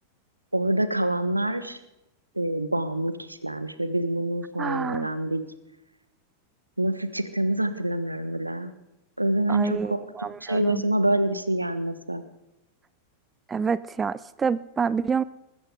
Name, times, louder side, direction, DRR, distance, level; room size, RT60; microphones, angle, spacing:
voice 1, 0.5-1.8 2.4-5.4 6.8-8.7 9.2-12.2, right 1 dB, 85° right, 12 dB, 1.2 m, -26 dB
voice 2, 4.6-5.1 9.5-10.9 13.5-15.2, right 6 dB, 20° right, 18 dB, 0.5 m, -28 dB
20.5 x 14.5 x 3.8 m, 0.93 s
figure-of-eight pair, 90°, 0 cm